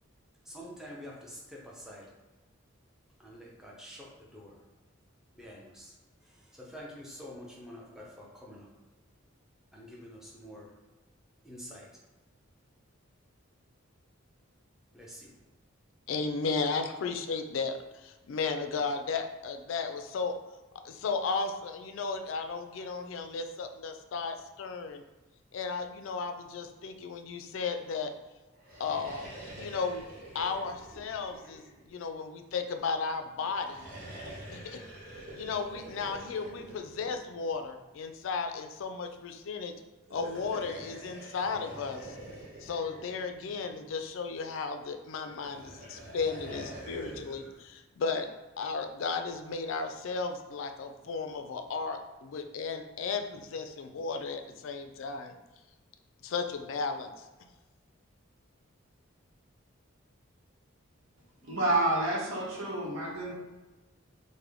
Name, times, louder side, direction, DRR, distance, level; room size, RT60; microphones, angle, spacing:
voice 1, 0.5-2.1 3.2-4.5 5.4-5.9 6.5-8.7 9.7-10.7 11.4-11.9 14.9-15.3, equal, ahead, -4 dB, 0.5 m, -47 dB
voice 2, 16.1-20.3 20.8-25.0 25.5-28.1 28.8-30.0 30.3-33.9 34.5-34.8 35.4-39.7 40.1-42.2 42.6-48.3 48.6-55.3 56.2-57.3, left 4 dB, 70° left, 6 dB, 0.3 m, -34 dB
sound 1, 28.6-32.2 33.5-37.8 40.0-44.0 45.3-47.6, right 1 dB, 45° right, 0.8 m, -46 dB
voice 3, 61.4-63.3, right 2 dB, 80° right, -4 dB, 0.9 m, -29 dB
3.4 x 2.1 x 3.4 m, 1.2 s
head